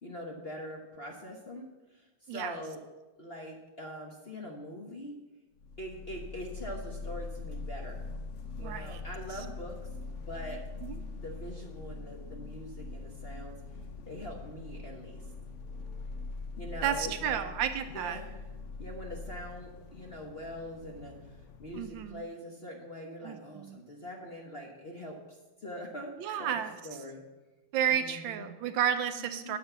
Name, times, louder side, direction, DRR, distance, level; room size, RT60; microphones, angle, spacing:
voice 1, 0.0-2.8 3.2-5.1 5.8-8.1 8.6-9.8 10.2-10.6 11.2-13.5 14.1-15.3 16.6-17.4 17.9-18.4 18.8-26.1 26.4-27.2 27.9-28.5 29.2-29.6, equal, 40° left, 1 dB, 0.9 m, -43 dB
sound 1, 5.6-22.2, left 3 dB, 85° left, 0.6 m, -43 dB
voice 2, 8.6-9.0 10.8-11.0 16.8-18.2 21.7-22.2 23.2-23.8 26.2-26.8 27.7-29.6, right 9 dB, 75° right, 10 dB, 1.3 m, -32 dB
8.9 x 5.5 x 8.0 m, 1.1 s
omnidirectional pair, 2.2 m